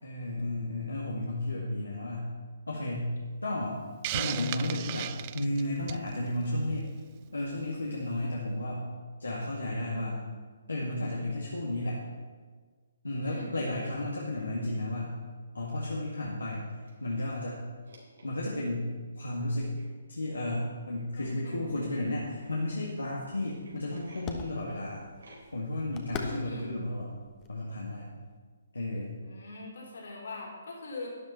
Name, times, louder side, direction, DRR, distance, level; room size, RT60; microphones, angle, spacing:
voice 1, 0.0-2.3 2.7-3.1 3.4-3.8 4.1-6.9 7.3-8.8 9.2-10.2 10.7-12.0 13.0-15.2 15.5-16.7 17.0-17.6 18.2-18.9 19.2-19.7 20.1-25.0 25.5-27.2 27.5-28.1 28.7-29.2, left 1 dB, 85° left, -4 dB, 1.9 m, -33 dB
Hiss, 4.0-6.1, right 15 dB, 35° right, 0.3 m, -35 dB
voice 2, 9.8-10.3 13.2-13.6 21.1-21.6 26.2-26.7 29.2-31.1, left 2 dB, 65° left, -3 dB, 4.2 m, -43 dB
sound 1, 15.3-15.4 15.6-15.7 16.5-17.4 17.8-18.7 19.7-19.9 20.9-21.0 21.8-22.6 23.5-24.3 25.2-25.7, right 2 dB, 75° right, 4.1 m, -57 dB
sound 2, 22.1-28.4, left 5 dB, 25° left, 1.2 m, -45 dB
12.0 x 10.0 x 4.4 m, 1.5 s
figure-of-eight pair, 135°, 0 cm